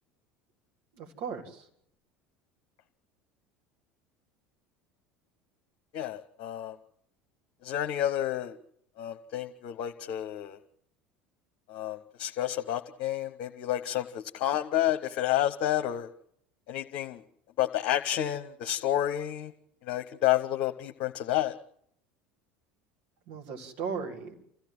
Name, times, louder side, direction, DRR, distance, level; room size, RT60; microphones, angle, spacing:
voice 1, 0.9-1.7 23.3-24.3, right 6 dB, 55° right, 0 dB, 3.7 m, -37 dB
voice 2, 5.9-6.8 7.6-8.6 9.0-10.6 11.7-16.1 16.7-17.2 17.6-19.5 19.8-21.6, left 12 dB, 55° left, 7 dB, 0.9 m, -30 dB
29.0 x 14.5 x 7.6 m, 0.74 s
figure-of-eight pair, 70°, 5 cm